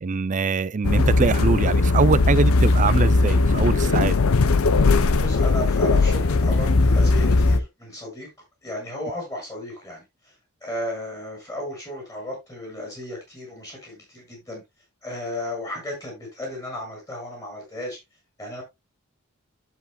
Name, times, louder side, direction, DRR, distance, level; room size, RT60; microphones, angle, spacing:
voice 1, 0.0-4.2, right 4 dB, 35° right, 0.4 m, -23 dB
sound 1, 0.8-7.6, left 3 dB, 75° left, 0.7 m, -19 dB
voice 2, 5.2-8.3 8.6-10.0 10.6-14.6 15.0-18.0 18.4-18.6, left 1 dB, 15° left, 6.5 m, -34 dB
11.0 x 8.3 x 2.3 m
head